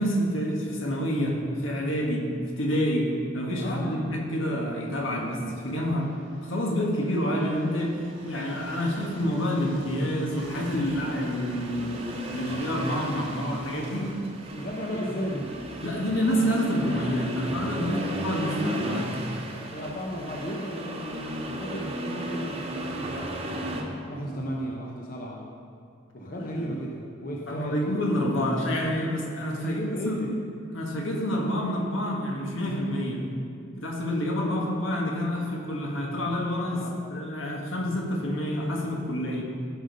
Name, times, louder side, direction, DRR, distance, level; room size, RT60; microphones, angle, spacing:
voice 1, 0.0-2.3 2.6-6.1 6.4-14.1 15.8-19.1 26.4-26.6 27.5-30.2 30.7-33.2 33.8-36.8 37.1-39.4, equal, 80° left, -1 dB, 1.6 m, -28 dB
voice 2, 3.6-4.1 14.5-15.8 17.8-18.1 19.7-23.6 24.1-25.5 26.1-28.0 29.6-30.4 36.7-37.0 39.2-39.4, equal, 45° left, -1 dB, 0.8 m, -35 dB
Train, 4.8-20.6, right 1 dB, 90° right, 1.4 m, -46 dB
Accelerating revving vroom, 10.4-23.8, right 1 dB, 30° right, 0.9 m, -35 dB
13.5 x 5.3 x 5.3 m, 2.3 s
head